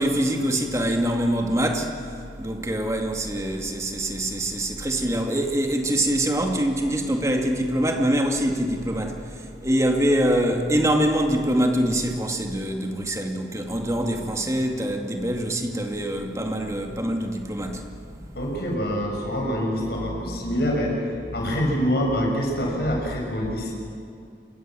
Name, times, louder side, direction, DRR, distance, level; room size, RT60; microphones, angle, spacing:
voice 1, 0.0-2.0 2.4-17.9 18.2-18.3 20.0-20.8, right 1 dB, 15° right, 3 dB, 2.3 m, -24 dB
voice 2, 18.3-21.0 21.3-23.7, equal, 65° left, 0 dB, 6.7 m, -25 dB
27.0 x 23.5 x 7.7 m, 2.4 s
head